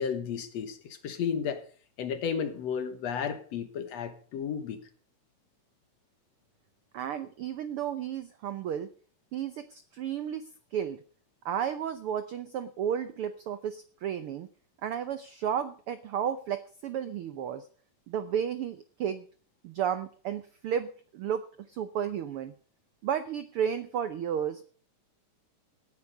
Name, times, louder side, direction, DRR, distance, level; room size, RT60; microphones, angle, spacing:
voice 1, 0.0-1.6 2.0-4.8, left 7 dB, 65° left, 2.3 m, -33 dB
voice 2, 6.9-8.9 9.3-11.0 11.4-14.5 14.8-17.7 18.1-19.2 19.6-22.5 23.0-24.6, right 8 dB, 80° right, 1.2 m, -33 dB
17.5 x 9.7 x 5.3 m
omnidirectional pair, 3.5 m